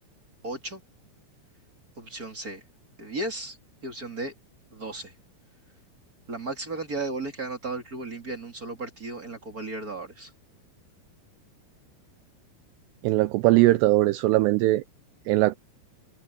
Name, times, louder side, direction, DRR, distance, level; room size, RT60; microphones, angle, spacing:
voice 1, 0.4-0.8 2.0-2.6 3.0-3.6 3.8-4.3 4.7-5.1 6.3-10.3, right 2 dB, 25° right, 2.4 m, -35 dB
voice 2, 13.0-14.8 15.3-15.6, right 18 dB, 80° right, 2.5 m, -20 dB
omnidirectional pair, 5.5 m